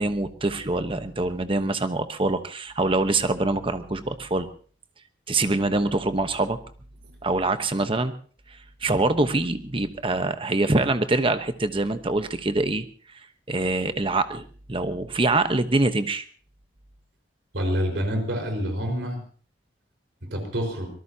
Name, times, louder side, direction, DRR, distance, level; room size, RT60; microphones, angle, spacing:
voice 1, 0.0-4.5 5.3-6.6 7.2-8.1 8.8-12.8 13.5-16.2, right 2 dB, 30° right, 9 dB, 1.0 m, -24 dB
voice 2, 17.5-19.2 20.2-20.9, equal, 70° right, 4 dB, 4.9 m, -27 dB
24.5 x 19.0 x 2.8 m, 0.42 s
head